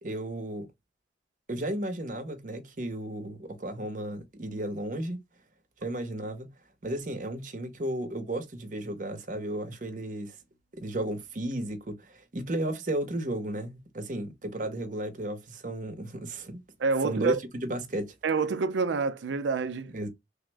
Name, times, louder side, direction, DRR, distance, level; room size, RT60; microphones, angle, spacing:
voice 1, 0.0-0.7 1.5-5.2 5.8-6.5 6.8-10.4 10.8-16.6 17.0-18.2 19.9-20.1, right 1 dB, 45° right, 0.7 m, -34 dB
voice 2, 16.8-17.4 18.2-19.9, right 4 dB, 80° right, 0.4 m, -27 dB
3.5 x 2.0 x 3.3 m
head